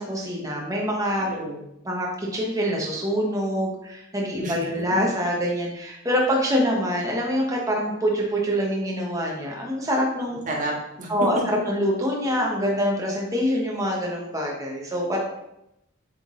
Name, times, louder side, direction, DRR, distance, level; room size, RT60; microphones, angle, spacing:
voice 1, 0.0-1.3 1.8-10.4 11.1-15.2, equal, 15° right, -2 dB, 1.1 m, -25 dB
voice 2, 1.3-1.6 4.4-4.5 10.5-11.1, right 1 dB, 40° right, -2 dB, 1.5 m, -30 dB
7.7 x 3.8 x 3.7 m, 0.85 s
head